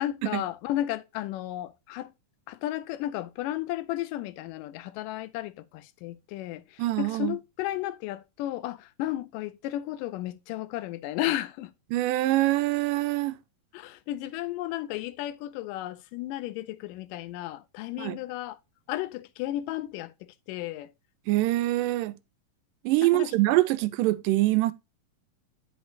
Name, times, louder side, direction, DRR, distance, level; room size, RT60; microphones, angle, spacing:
voice 1, 0.0-2.1 2.5-11.7 13.7-18.6 18.9-20.1 20.5-20.9 23.0-23.3, left 14 dB, 85° left, 2.2 m, -33 dB
voice 2, 6.8-7.4 11.9-13.4 18.0-18.2 21.3-22.2 22.9-24.7, right 18 dB, 85° right, 2.2 m, -24 dB
10.5 x 5.9 x 2.5 m
omnidirectional pair, 3.8 m